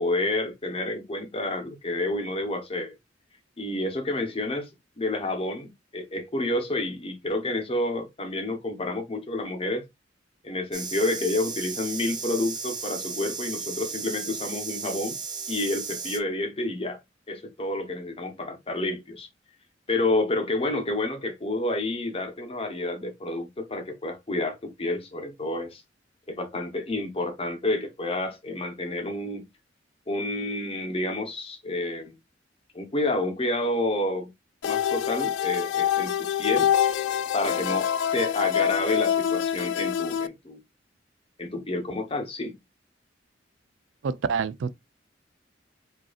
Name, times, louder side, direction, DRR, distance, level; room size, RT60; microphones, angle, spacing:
voice 1, 0.0-3.0 3.6-4.7 5.0-9.8 10.4-15.2 15.5-17.0 17.3-19.3 19.9-25.8 26.3-29.5 30.1-32.2 32.7-34.3 34.6-36.7 37.3-40.6 41.4-42.6, left 2 dB, 30° left, 0.9 m, -29 dB
sound 1, 10.7-16.2, right 5 dB, 25° right, 0.6 m, -35 dB
sound 2, 34.6-40.3, left 9 dB, 75° left, 0.3 m, -25 dB
voice 2, 44.0-44.7, right 5 dB, 80° right, 0.4 m, -27 dB
5.0 x 2.7 x 2.3 m
head